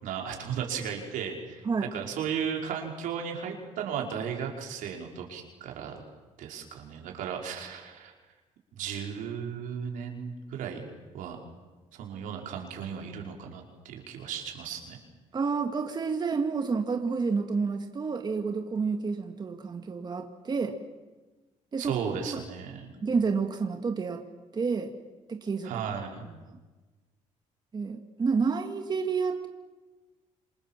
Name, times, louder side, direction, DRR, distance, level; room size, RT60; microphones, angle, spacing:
voice 1, 0.0-6.0 6.4-8.1 8.7-10.9 11.1-11.4 11.9-15.0 21.8-22.9 25.6-26.2, right 7 dB, 85° right, 1 dB, 5.1 m, -35 dB
voice 2, 15.3-20.8 21.7-22.4 23.0-24.2 24.5-24.9 25.3-25.7 27.7-29.5, right 5 dB, 30° right, 5 dB, 2.0 m, -29 dB
28.0 x 26.0 x 7.4 m, 1.2 s
cardioid pair, 110°, 13 cm